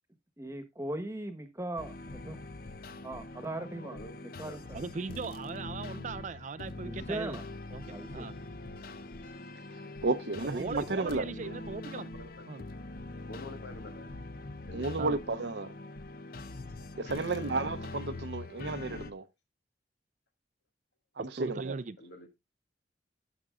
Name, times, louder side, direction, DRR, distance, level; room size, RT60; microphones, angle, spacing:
voice 1, 0.4-2.4 3.0-4.8 5.1-5.2 6.8-7.4 7.9-8.3, right 1 dB, 15° right, 1.2 m, -39 dB
sound 1, 1.8-19.1, left 2 dB, 55° left, 0.7 m, -43 dB
voice 2, 3.8-4.2 4.5-4.6 9.8-9.9 10.9-11.6 11.9-12.8 13.3-14.2 14.7-14.9 22.0-22.3, left 2 dB, 85° left, 2.0 m, -48 dB
voice 3, 4.7-7.4 7.7-7.9 8.1-8.3 10.4-12.1 12.5-12.6 15.0-15.2 21.4-21.9, right 4 dB, 45° right, 0.4 m, -38 dB
voice 4, 10.0-11.2 14.7-15.7 17.0-19.2 21.2-21.5, right 3 dB, 70° right, 0.8 m, -32 dB
17.5 x 6.1 x 2.5 m
head